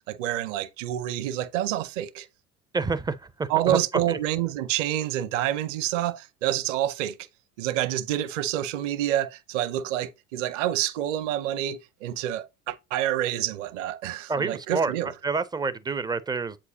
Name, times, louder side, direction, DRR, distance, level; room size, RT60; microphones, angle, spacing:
voice 1, 0.0-2.3 3.5-7.1 7.6-15.1, right 12 dB, 60° right, 1.0 m, -28 dB
voice 2, 2.7-3.8 4.1-4.2 14.3-14.9 15.2-16.6, right 4 dB, 10° right, 0.4 m, -28 dB
7.9 x 4.9 x 2.8 m
figure-of-eight pair, 70°, 43 cm